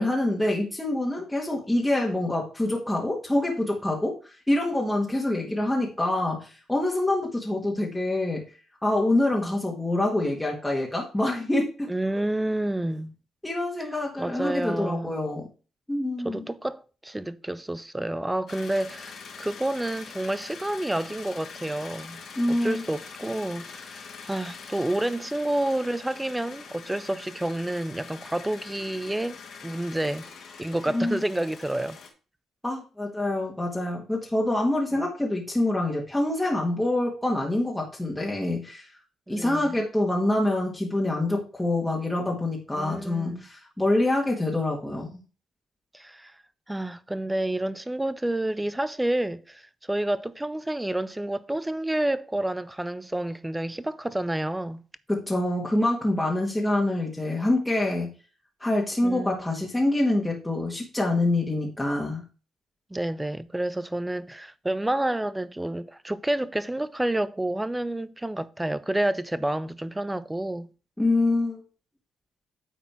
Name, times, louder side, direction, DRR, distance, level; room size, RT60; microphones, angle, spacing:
voice 1, 0.0-8.4 8.8-11.9 13.4-15.5 15.9-16.5 22.4-22.8 30.9-31.2 32.6-38.9 39.3-45.2 55.1-58.1 58.6-62.2 71.0-71.6, left 1 dB, 10° left, 1.8 m, -26 dB
voice 2, 11.9-13.1 14.2-15.2 16.2-22.2 22.5-24.0 24.3-30.3 30.6-32.0 34.9-35.1 39.3-39.7 42.7-43.4 45.9-46.3 46.7-54.8 59.0-59.5 62.9-70.7, right 1 dB, 10° right, 0.6 m, -29 dB
sound 1, 18.5-32.1, left 5 dB, 60° left, 2.2 m, -44 dB
9.2 x 4.2 x 4.5 m
cardioid pair, 90°, 0 cm